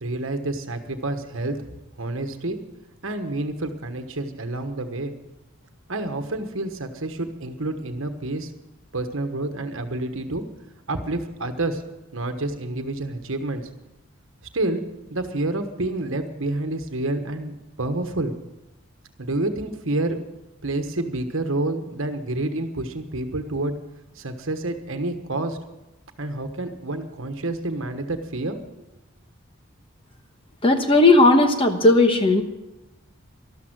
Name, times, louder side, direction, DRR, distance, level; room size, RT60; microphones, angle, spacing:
voice 1, 0.0-2.6 3.0-5.1 5.9-8.5 8.9-10.4 10.9-11.8 12.1-13.6 14.5-14.8 15.1-18.3 19.2-20.2 20.6-23.7 24.1-25.6 26.2-28.6, right 2 dB, 65° right, 7 dB, 1.3 m, -28 dB
voice 2, 30.6-32.4, left 2 dB, 25° left, 6 dB, 1.2 m, -16 dB
13.0 x 12.5 x 6.2 m, 0.98 s
head